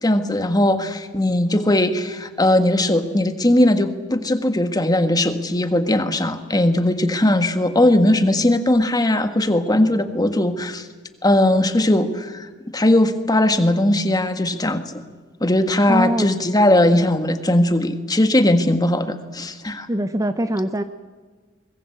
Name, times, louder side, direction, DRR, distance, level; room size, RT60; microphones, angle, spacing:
voice 1, 0.0-10.8 11.2-15.0 15.4-19.9, left 1 dB, 20° left, 8 dB, 1.6 m, -19 dB
voice 2, 15.9-16.2 19.9-20.8, equal, 15° right, 10 dB, 0.7 m, -22 dB
24.0 x 21.0 x 7.9 m, 1.4 s
head